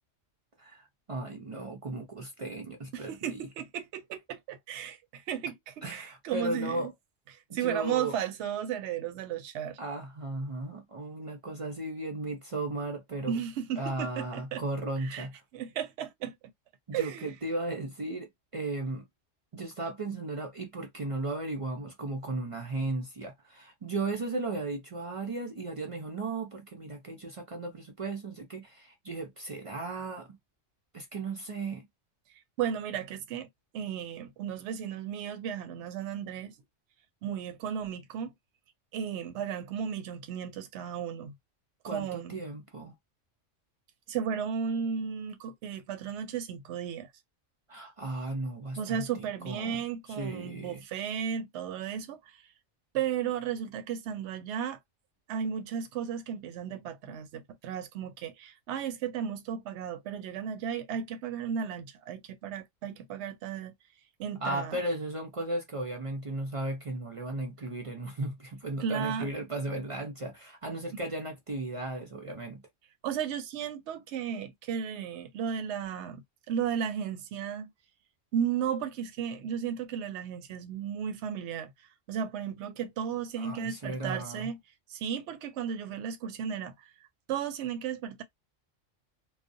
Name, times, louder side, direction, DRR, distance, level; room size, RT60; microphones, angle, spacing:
voice 1, 0.6-3.4 5.8-6.9 7.6-8.2 9.8-13.4 13.8-15.3 16.9-19.0 19.5-30.4 30.9-31.9 41.8-43.0 47.7-49.8 50.1-50.8 64.4-72.6 83.4-84.5, right 2 dB, 50° right, 0.3 m, -36 dB
voice 2, 2.9-6.9 7.5-9.8 13.3-14.6 15.0-15.3 15.5-16.4 16.9-17.3 32.6-33.5 33.7-36.5 37.2-38.3 38.9-41.3 41.9-42.4 44.1-47.1 48.8-52.4 52.9-54.8 55.3-63.7 64.2-64.8 68.8-69.3 70.9-71.0 73.0-77.7 78.3-81.7 82.1-84.6 84.9-86.7 87.3-88.2, right 8 dB, 70° right, 0.8 m, -34 dB
2.4 x 2.0 x 2.6 m
omnidirectional pair, 1.3 m